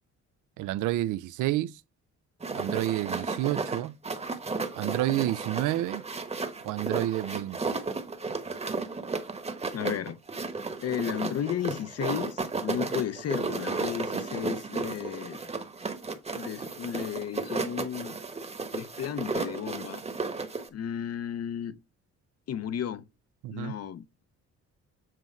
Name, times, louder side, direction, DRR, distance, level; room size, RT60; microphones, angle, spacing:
voice 1, 0.6-1.7 2.5-4.0 4.8-6.0 6.6-7.7 23.4-23.7, right 15 dB, 80° right, 0.5 m, -29 dB
sound 1, 2.4-20.7, right 4 dB, 20° right, 1.0 m, -34 dB
voice 2, 9.7-10.2 10.8-15.4 16.3-18.2 18.7-20.0 20.7-21.8 22.5-23.0 23.5-24.0, left 9 dB, 55° left, 0.7 m, -33 dB
7.5 x 3.1 x 5.2 m
cardioid pair, 90°, 30 cm